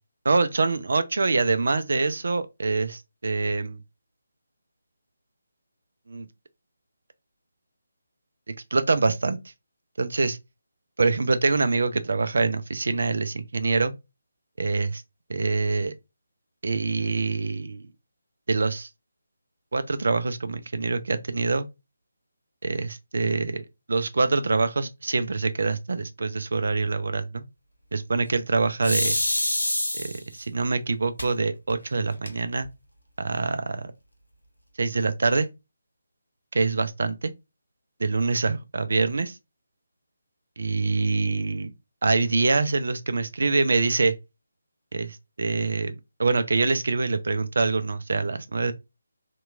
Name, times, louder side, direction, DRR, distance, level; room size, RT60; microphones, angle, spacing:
voice 1, 0.3-3.8 6.1-6.3 8.7-9.4 10.0-10.4 11.0-13.9 14.6-15.0 15.3-15.9 16.6-17.8 18.5-18.9 19.7-21.7 22.6-27.5 27.9-29.2 30.0-32.7 33.2-33.9 34.8-35.5 36.5-37.3 38.0-39.4 40.6-41.7 42.0-44.1 44.9-48.7, right 3 dB, 55° right, 0.3 m, -25 dB
sound 1, 28.8-30.4 31.2-31.3 31.7-31.8 32.1-32.7, left 1 dB, 75° left, 0.9 m, -26 dB
2.8 x 2.2 x 2.4 m
figure-of-eight pair, 150°, 0 cm